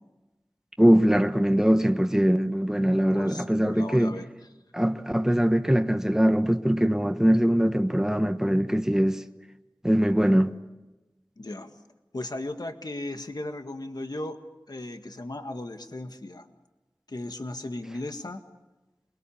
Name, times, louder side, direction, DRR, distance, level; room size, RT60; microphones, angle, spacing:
voice 1, 0.8-4.2 4.7-9.2 9.8-10.5, equal, 5° right, 1.3 m, -22 dB
voice 2, 3.1-4.3 11.4-11.7 12.1-14.4 14.7-16.5 17.1-18.4, left 2 dB, 65° left, 1.8 m, -36 dB
28.0 x 21.5 x 7.2 m
wide cardioid pair, 40°, 7 cm